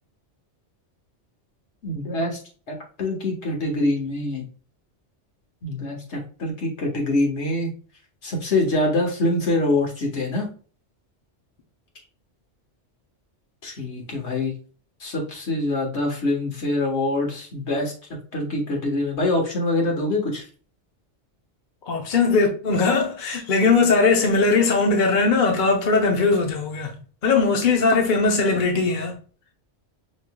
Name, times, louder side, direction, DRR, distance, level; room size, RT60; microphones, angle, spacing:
voice 1, 1.8-2.4 2.7-4.4 5.6-7.7 8.2-10.5 13.6-14.5 15.0-17.9 18.3-20.4, left 2 dB, 75° left, 1.6 m, -24 dB
voice 2, 21.9-27.0 27.2-29.2, left 4 dB, 45° left, 0.9 m, -20 dB
5.3 x 3.2 x 2.2 m
omnidirectional pair, 1.2 m